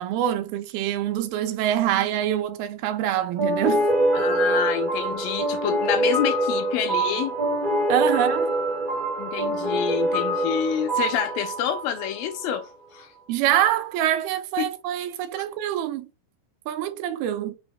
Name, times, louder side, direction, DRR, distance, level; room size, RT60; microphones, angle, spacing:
voice 1, 0.0-3.9 7.9-8.5 13.3-16.1 16.7-17.6, right 12 dB, 80° right, 2.4 m, -25 dB
sound 1, 3.4-12.6, right 1 dB, 55° right, 0.5 m, -25 dB
voice 2, 4.1-7.4 9.2-13.1 14.6-14.7, left 9 dB, 80° left, 2.2 m, -27 dB
6.0 x 2.0 x 3.5 m
omnidirectional pair, 4.5 m